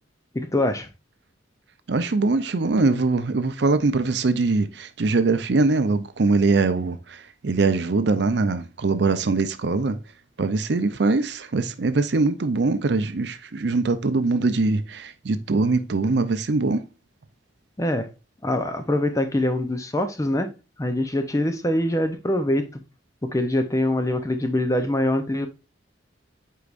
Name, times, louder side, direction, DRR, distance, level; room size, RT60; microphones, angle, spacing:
voice 1, 0.3-0.9 17.8-18.1 18.4-20.5 20.8-22.6 23.2-25.5, left 1 dB, 15° left, 0.6 m, -24 dB
voice 2, 1.9-10.0 10.4-16.8, right 3 dB, 60° right, 0.5 m, -22 dB
8.4 x 4.7 x 2.5 m
head